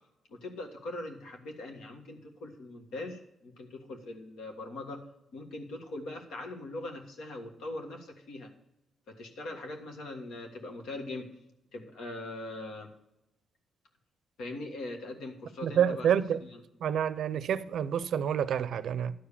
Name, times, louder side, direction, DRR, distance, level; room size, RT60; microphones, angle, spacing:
voice 1, 0.3-5.0 5.3-8.5 9.1-11.3 11.7-12.9 14.4-16.1 16.4-16.6, left 2 dB, 80° left, 1.6 m, -41 dB
voice 2, 15.6-16.4 16.8-19.1, right 9 dB, 75° right, 0.5 m, -28 dB
11.5 x 4.9 x 7.0 m
supercardioid pair, 65°, 0 cm